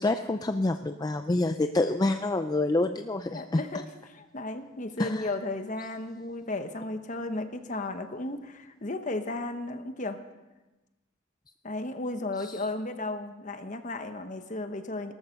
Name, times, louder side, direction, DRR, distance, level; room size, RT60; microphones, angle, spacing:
voice 1, 0.0-3.6 5.0-5.3 12.4-12.6, left 2 dB, 20° left, 8 dB, 0.4 m, -27 dB
voice 2, 3.3-10.2 11.6-15.1, left 2 dB, 40° left, 8 dB, 1.1 m, -34 dB
18.5 x 13.5 x 5.4 m, 1.1 s
head